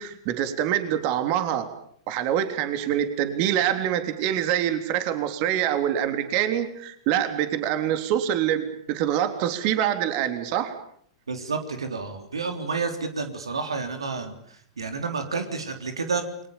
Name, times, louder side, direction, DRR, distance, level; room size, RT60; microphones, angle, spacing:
voice 1, 0.0-1.7 2.1-10.8, right 10 dB, 45° right, 8 dB, 3.4 m, -25 dB
voice 2, 11.3-16.5, right 4 dB, 85° right, 7 dB, 3.5 m, -30 dB
29.0 x 23.5 x 7.2 m, 0.64 s
hypercardioid pair, 105°, 3 cm